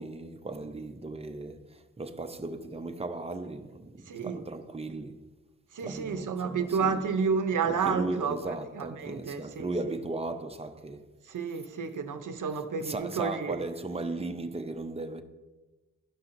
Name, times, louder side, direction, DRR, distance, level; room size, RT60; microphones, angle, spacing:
voice 1, 0.0-5.2 5.8-7.1 7.6-11.0 12.8-15.2, right 2 dB, 20° right, 0.6 m, -36 dB
voice 2, 4.1-4.4 5.7-9.7 11.3-13.6, right 5 dB, 70° right, 0.7 m, -31 dB
12.0 x 5.6 x 2.6 m
cardioid pair, 55°, 33 cm